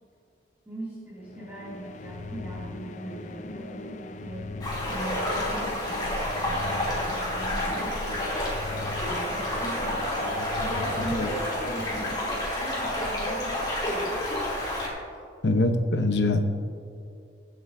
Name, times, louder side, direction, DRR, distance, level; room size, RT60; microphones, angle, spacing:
voice 1, 0.7-4.5 4.9-7.9 9.0-10.4 10.7-14.2, right 1 dB, 15° right, -9 dB, 2.4 m, -39 dB
sound 1, 1.2-13.1, left 3 dB, 40° left, 0.4 m, -40 dB
sound 2, 4.6-14.9, left 1 dB, 25° left, 2.8 m, -29 dB
voice 2, 10.4-10.7 11.1-11.3 15.4-16.4, left 2 dB, 70° left, 6 dB, 0.9 m, -24 dB
22.5 x 7.8 x 2.6 m, 2.5 s
head